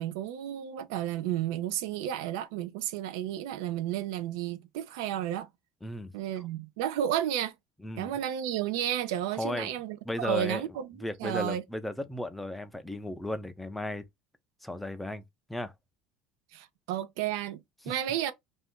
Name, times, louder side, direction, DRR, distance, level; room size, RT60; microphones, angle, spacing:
voice 1, 0.0-5.5 6.1-7.5 8.0-11.6 16.5-18.3, right 11 dB, 90° right, 0.5 m, -32 dB
voice 2, 5.8-6.4 7.8-8.1 9.3-9.7 10.1-10.6 11.0-14.0 14.6-15.2 15.5-15.7 17.9-18.0, left 1 dB, 5° left, 0.4 m, -35 dB
2.6 x 2.3 x 3.5 m
cardioid pair, 145°, 2 cm